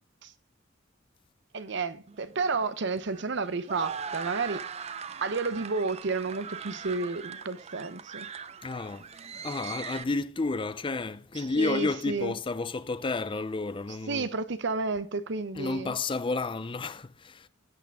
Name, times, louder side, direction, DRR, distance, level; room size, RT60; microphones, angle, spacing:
voice 1, 1.5-4.6 5.2-8.3 11.4-12.3 14.1-15.9, right 4 dB, 65° right, 0.8 m, -31 dB
sound 1, 2.1-10.0, right 6 dB, 35° right, 0.5 m, -41 dB
voice 2, 8.6-9.1 9.4-14.3 15.5-17.5, left 3 dB, 25° left, 0.5 m, -31 dB
14.5 x 8.4 x 3.5 m
head